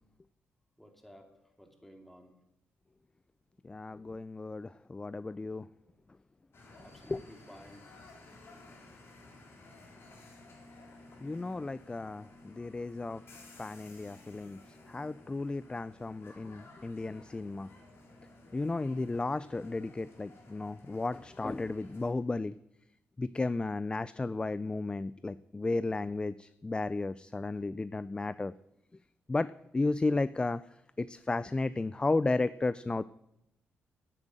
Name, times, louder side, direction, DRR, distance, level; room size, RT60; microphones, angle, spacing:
voice 1, 0.8-1.3 1.6-2.3 6.8-7.9, equal, 5° left, 3 dB, 2.5 m, -54 dB
voice 2, 3.6-5.7 7.1-7.2 11.2-13.2 13.6-14.6 14.9-17.7 18.5-22.5 23.2-28.5 29.3-30.6 31.0-33.0, left 3 dB, 20° left, 16 dB, 0.3 m, -33 dB
sound 1, 6.5-22.1, left 2 dB, 60° left, 3.8 m, -55 dB
9.9 x 8.9 x 7.7 m, 0.85 s
cardioid pair, 70°, 5 cm